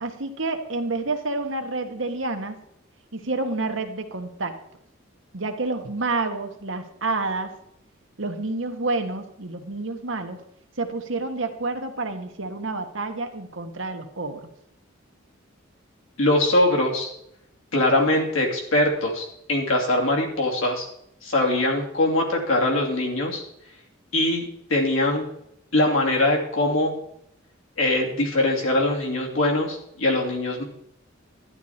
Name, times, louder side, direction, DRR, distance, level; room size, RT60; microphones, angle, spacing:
voice 1, 0.0-2.5 3.1-4.5 5.3-7.5 8.2-10.4 10.8-14.4, right 3 dB, 65° right, 6 dB, 1.3 m, -29 dB
voice 2, 16.2-17.1 17.7-20.9 21.2-23.4 24.1-24.4 24.7-25.3 25.7-27.0 27.8-30.6, left 1 dB, 75° left, 0 dB, 2.7 m, -22 dB
11.5 x 11.0 x 4.3 m, 0.75 s
head